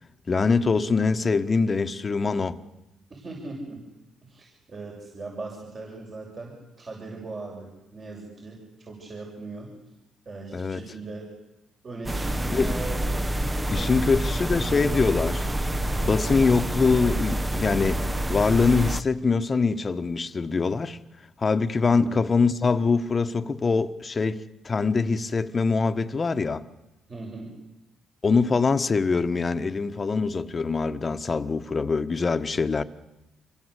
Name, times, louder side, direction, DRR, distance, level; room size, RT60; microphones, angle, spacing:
voice 1, 0.3-2.6 10.5-10.8 12.5-12.7 13.7-15.5 16.0-21.0 21.4-26.6 28.2-32.8, left 4 dB, 35° left, 1.4 m, -23 dB
voice 2, 3.1-3.8 4.2-9.7 10.3-11.3 11.8-13.0 13.6-14.0 14.4-15.1 21.8-22.3 27.1-27.5, right 3 dB, 40° right, 7.2 m, -39 dB
sound 1, 12.1-19.0, right 1 dB, 15° right, 1.2 m, -27 dB
26.5 x 23.5 x 8.3 m
cardioid pair, 90°, 0 cm